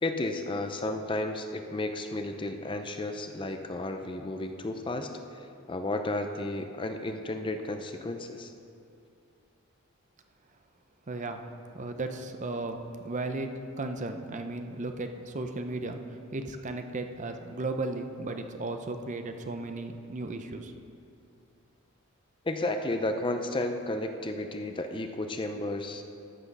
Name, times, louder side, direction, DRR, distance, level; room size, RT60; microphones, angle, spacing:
voice 1, 0.0-8.5 22.4-26.0, left 2 dB, 25° left, 6 dB, 0.5 m, -33 dB
voice 2, 11.1-11.4 11.7-12.8 13.0-20.7, right 2 dB, 35° right, 6 dB, 0.6 m, -35 dB
14.0 x 6.1 x 5.4 m, 2.6 s
head